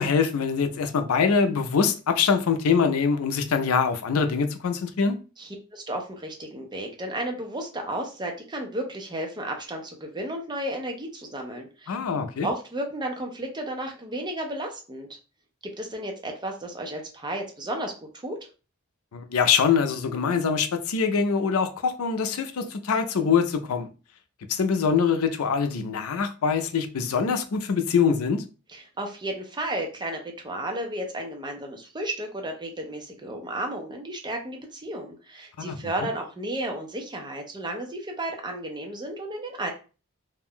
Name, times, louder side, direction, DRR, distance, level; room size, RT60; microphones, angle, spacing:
voice 1, 0.0-5.2 11.9-12.5 19.1-23.9 24.5-28.4 35.6-35.8, left 6 dB, 75° left, 0.4 m, -24 dB
voice 2, 5.4-12.0 12.4-15.1 15.8-18.4 28.7-39.7, right 1 dB, 20° right, 0.6 m, -33 dB
2.5 x 2.2 x 3.5 m
head